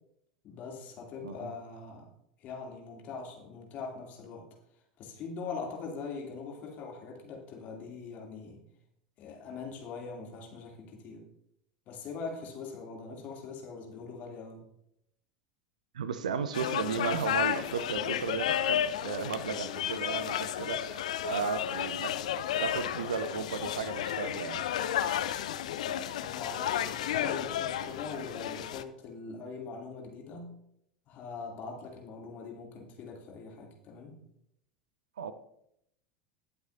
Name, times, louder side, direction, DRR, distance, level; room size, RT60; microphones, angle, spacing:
voice 1, 0.4-2.1 2.4-4.5 5.0-8.6 9.2-11.3 11.9-14.6 26.2-30.5 31.1-34.2, left 4 dB, 40° left, 2.9 m, -42 dB
voice 2, 15.9-22.2 22.6-24.7 25.1-25.2 35.2-35.3, right 6 dB, 70° right, 0.7 m, -35 dB
sound 1, 16.5-28.8, left 10 dB, 60° left, 0.6 m, -32 dB
19.5 x 7.9 x 2.7 m
figure-of-eight pair, 80°, 4 cm